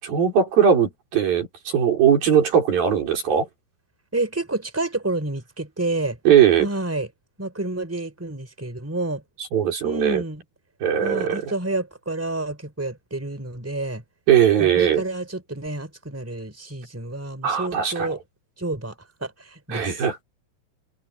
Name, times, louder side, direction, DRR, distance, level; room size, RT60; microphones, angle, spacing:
voice 1, 0.0-3.5 6.2-6.7 9.5-10.2 10.8-11.4 14.3-15.0 17.4-18.1 19.7-20.2, right 8 dB, 75° right, 6.8 m, -19 dB
voice 2, 4.1-6.2 6.6-7.1 7.4-9.2 9.8-10.4 11.0-14.0 14.6-18.2 18.6-20.0, right 2 dB, 5° right, 4.1 m, -29 dB
open air
omnidirectional pair, 4.2 m